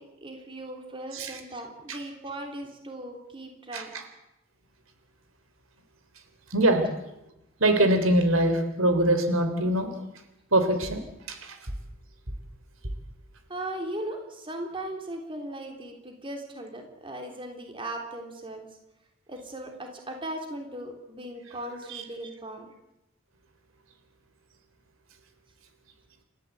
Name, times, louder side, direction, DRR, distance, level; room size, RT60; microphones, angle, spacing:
voice 1, 0.0-3.9 13.5-18.7 19.3-22.7, right 1 dB, 25° right, 3 dB, 3.4 m, -38 dB
voice 2, 6.5-6.9 7.6-10.0 10.5-11.0 11.3-11.6 21.9-22.0, right 1 dB, 80° right, 7 dB, 3.7 m, -23 dB
29.5 x 14.0 x 8.3 m, 0.91 s
head